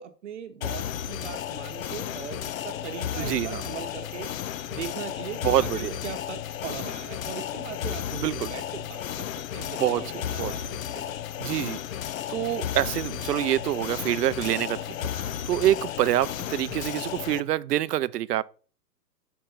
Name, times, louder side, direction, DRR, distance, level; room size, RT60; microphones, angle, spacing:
voice 1, 0.0-4.3 4.7-11.2, right 8 dB, 45° right, 0.9 m, -40 dB
sound 1, 0.6-17.4, left 10 dB, 55° left, 0.5 m, -33 dB
voice 2, 3.2-3.6 5.4-6.0 8.1-8.5 9.6-10.0 10.4-10.5 11.4-11.8 12.3-18.4, right 13 dB, 70° right, 0.6 m, -26 dB
6.4 x 5.7 x 3.9 m
hypercardioid pair, 160°, 49 cm